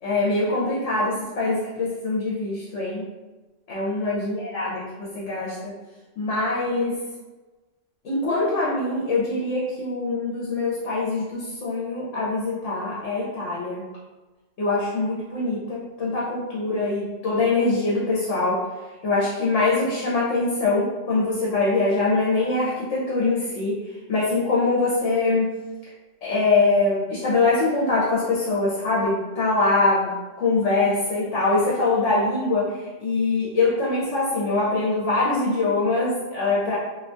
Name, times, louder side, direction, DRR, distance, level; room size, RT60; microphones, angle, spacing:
voice 1, 0.0-3.1 3.7-5.7 6.2-7.0 8.0-13.9 14.6-18.6 19.0-23.8 24.1-25.5 26.2-36.8, left 3 dB, 70° left, -6 dB, 1.0 m, -23 dB
2.7 x 2.2 x 2.5 m, 1.2 s
omnidirectional pair, 1.3 m